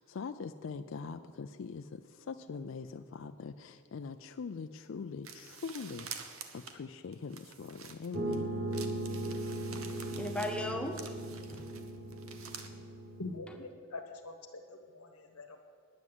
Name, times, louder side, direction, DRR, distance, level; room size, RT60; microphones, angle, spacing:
voice 1, 0.0-6.1 6.5-8.5, left 5 dB, 60° left, 0.4 m, -42 dB
sound 1, 5.2-8.4 8.7-12.7, right 6 dB, 70° right, 1.0 m, -48 dB
sound 2, 8.1-13.4, right 1 dB, 40° right, 1.0 m, -38 dB
voice 2, 9.7-12.8, left 1 dB, 5° left, 0.7 m, -40 dB
voice 3, 13.2-15.6, left 2 dB, 85° left, 1.2 m, -44 dB
9.5 x 9.4 x 7.8 m
head